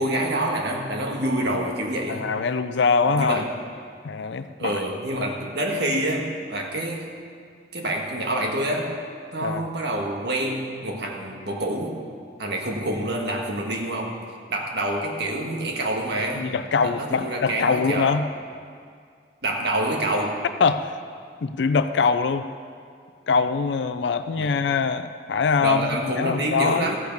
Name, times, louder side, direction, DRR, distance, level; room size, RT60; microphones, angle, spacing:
voice 1, 0.0-2.3 3.0-3.5 4.6-7.1 7.7-9.0 9.3-12.0 12.4-14.2 14.5-16.5 16.8-18.1 19.4-20.4 24.4-24.5 25.6-27.0, right 1 dB, 65° right, 1 dB, 1.6 m, -27 dB
voice 2, 2.1-3.5 4.0-4.7 5.2-5.3 9.4-9.7 16.4-18.3 20.6-20.9 21.4-22.5 23.3-26.9, left 5 dB, 75° left, 11 dB, 0.4 m, -23 dB
14.5 x 7.1 x 5.3 m, 2.2 s
head